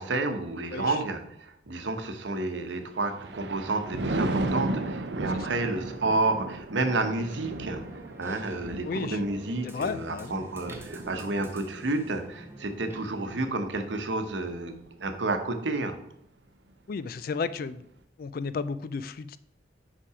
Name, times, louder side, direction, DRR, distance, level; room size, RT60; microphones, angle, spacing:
voice 1, 0.0-7.8 8.2-14.7 15.0-16.0, right 2 dB, 90° right, 7 dB, 0.9 m, -30 dB
Thunder, 2.8-14.3 14.8-15.1, right 2 dB, 70° right, 0.6 m, -35 dB
voice 2, 5.3-5.6 8.8-9.2 9.6-10.5 16.9-17.9 18.2-19.4, left 5 dB, 50° left, 15 dB, 0.3 m, -33 dB
sound 1, 7.0-13.5, right 1 dB, 15° right, 0.9 m, -48 dB
5.7 x 5.3 x 4.8 m, 0.73 s
head